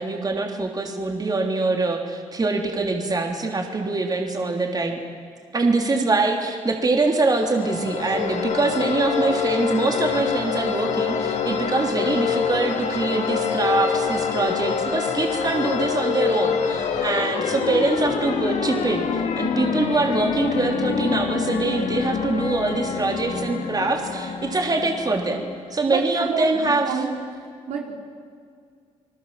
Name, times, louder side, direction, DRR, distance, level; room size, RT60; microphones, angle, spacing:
voice 1, 0.0-5.0 5.5-25.4 25.7-26.9, right 3 dB, 30° right, 3 dB, 3.3 m, -24 dB
sound 1, 7.2-25.8, left 6 dB, 70° left, 2.4 m, -26 dB
voice 2, 25.9-27.1 27.7-28.0, right 5 dB, 80° right, 0 dB, 4.1 m, -28 dB
29.5 x 20.5 x 7.6 m, 2.2 s
supercardioid pair, 70°, 13 cm